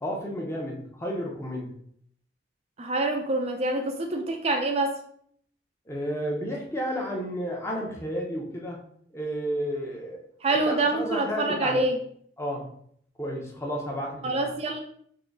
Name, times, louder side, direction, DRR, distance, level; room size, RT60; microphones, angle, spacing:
voice 1, 0.0-1.7 5.9-8.8 9.1-10.2 10.7-11.8 12.4-12.7 13.2-14.4, equal, 15° left, -1 dB, 0.8 m, -32 dB
voice 2, 2.8-5.0 10.4-12.0 14.2-14.8, right 2 dB, 35° right, 3 dB, 0.4 m, -26 dB
3.7 x 2.7 x 3.9 m, 0.65 s
head